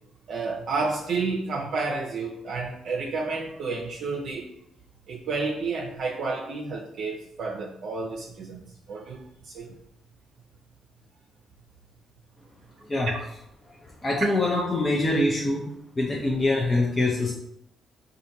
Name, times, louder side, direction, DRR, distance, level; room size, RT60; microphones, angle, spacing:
voice 1, 0.3-4.5 5.1-9.7 13.1-13.2, right 4 dB, 65° right, -2 dB, 0.5 m, -31 dB
voice 2, 14.0-15.7 16.0-17.3, left 2 dB, 25° left, -2 dB, 0.6 m, -24 dB
4.2 x 2.5 x 2.6 m, 0.76 s
cardioid pair, 90°, 0 cm